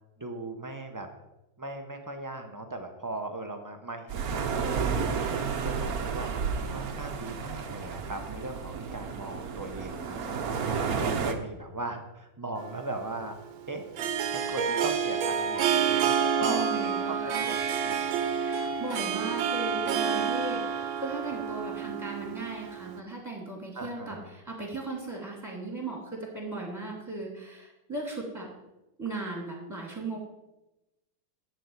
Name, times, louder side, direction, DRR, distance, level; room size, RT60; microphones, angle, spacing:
voice 1, 0.2-1.1 1.6-13.3 13.7-13.8 14.3-16.7 17.1-18.2 23.7-24.3, right 2 dB, 30° right, 4 dB, 0.3 m, -39 dB
sound 1, 4.1-11.3, right 6 dB, 55° right, 1.2 m, -31 dB
Harp, 12.6-23.0, right 7 dB, 90° right, 1.6 m, -29 dB
voice 2, 16.4-17.5 18.4-28.5 29.0-30.2, right 3 dB, 10° right, -2 dB, 2.8 m, -37 dB
11.5 x 4.7 x 8.1 m, 0.97 s
omnidirectional pair, 2.1 m